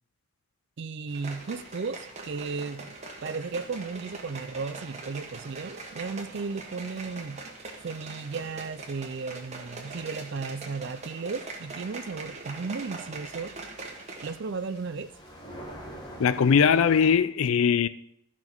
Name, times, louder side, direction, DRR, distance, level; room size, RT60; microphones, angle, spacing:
voice 1, 0.8-3.0 3.2-7.4 7.8-13.5 14.2-15.1, right 4 dB, 55° right, 0.4 m, -35 dB
sound 1, 1.1-17.2, equal, 20° left, 1.6 m, -50 dB
sound 2, 1.1-14.4 14.7-14.8, right 3 dB, 30° right, 1.5 m, -42 dB
voice 2, 16.2-17.9, left 7 dB, 75° left, 0.4 m, -21 dB
12.5 x 5.8 x 4.5 m
head